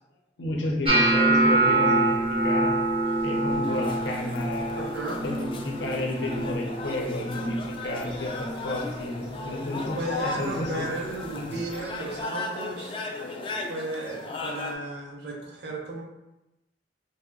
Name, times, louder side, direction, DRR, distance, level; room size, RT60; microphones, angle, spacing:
voice 1, 0.4-2.7 3.2-4.8 5.2-10.0 10.2-10.9 11.5-11.6, left 1 dB, 85° left, 1 dB, 0.6 m, -31 dB
sound 1, 0.9-7.0 7.2-7.7 8.1-8.6 9.3-9.5 11.2-11.3, right 2 dB, 35° right, 0.5 m, -25 dB
sound 2, 3.6-14.7, left 3 dB, 30° left, 0.3 m, -36 dB
voice 2, 4.7-5.2 9.9-13.0 13.7-16.0, right 2 dB, 65° right, -1 dB, 0.7 m, -34 dB
2.8 x 2.1 x 3.6 m, 0.94 s
head